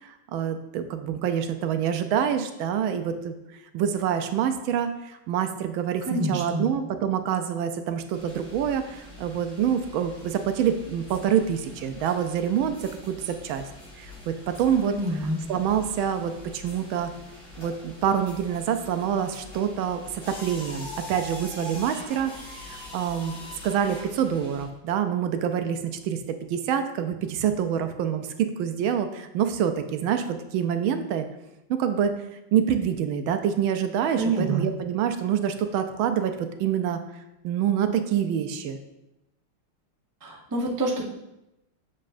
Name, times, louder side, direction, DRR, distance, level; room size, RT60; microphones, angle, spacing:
voice 1, 0.0-3.3 3.7-13.6 14.0-14.9 15.5-17.1 17.6-31.3 31.7-32.1 32.5-38.8, right 8 dB, 75° right, 8 dB, 1.3 m, -26 dB
voice 2, 6.0-6.6 14.9-15.4 34.2-34.7 40.2-41.1, right 2 dB, 30° right, -2 dB, 0.3 m, -27 dB
sound 1, 8.1-24.6, left 1 dB, 65° left, 3.4 m, -44 dB
7.5 x 7.3 x 2.5 m, 0.91 s
omnidirectional pair, 2.4 m